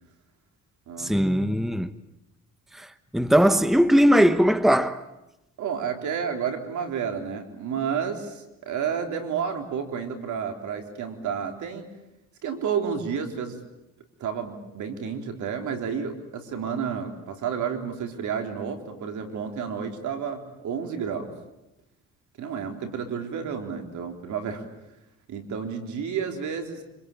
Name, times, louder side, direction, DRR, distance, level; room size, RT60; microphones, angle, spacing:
voice 1, 1.0-1.9 2.7-2.9 3.1-5.0, equal, ahead, 1.2 m, -19 dB
voice 2, 5.6-11.9 12.4-13.6 14.2-21.3 22.4-24.7 25.3-26.8, right 7 dB, 75° right, 4.1 m, -31 dB
26.0 x 25.5 x 8.8 m
cardioid pair, 90°, 30 cm